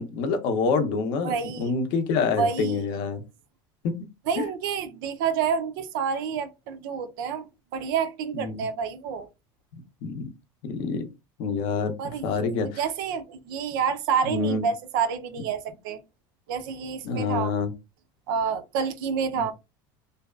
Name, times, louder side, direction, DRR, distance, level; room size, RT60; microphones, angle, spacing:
voice 1, 0.0-3.2 4.4-4.5 8.3-8.6 10.0-10.3 10.6-11.1 11.4-11.9 12.2-12.8 14.2-14.7 17.0-17.7 19.3-19.5, left 4 dB, 50° left, 0.5 m, -27 dB
voice 2, 1.2-1.7 2.4-2.8 4.3-7.4 7.7-9.3 12.0-12.3 12.8-16.0 16.5-17.5 18.3-19.5, right 6 dB, 80° right, 0.5 m, -28 dB
2.6 x 2.2 x 2.3 m
cardioid pair, 170°, 11 cm